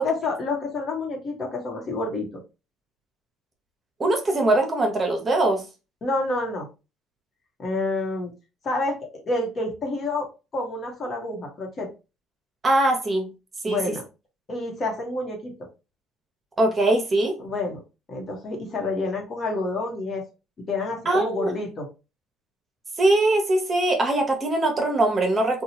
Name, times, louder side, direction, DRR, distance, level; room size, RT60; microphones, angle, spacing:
voice 1, 0.0-2.3 6.0-6.7 7.6-8.3 8.6-9.0 9.2-11.9 13.7-14.0 14.5-15.5 17.4-17.8 18.1-20.2 20.7-21.9, left 2 dB, 45° left, 1.1 m, -28 dB
voice 2, 4.0-5.6 12.6-13.3 13.6-14.0 16.6-17.3 21.0-21.5 23.0-25.6, right 2 dB, 30° right, 1.0 m, -21 dB
2.7 x 2.3 x 2.8 m
hypercardioid pair, 65°, 0 cm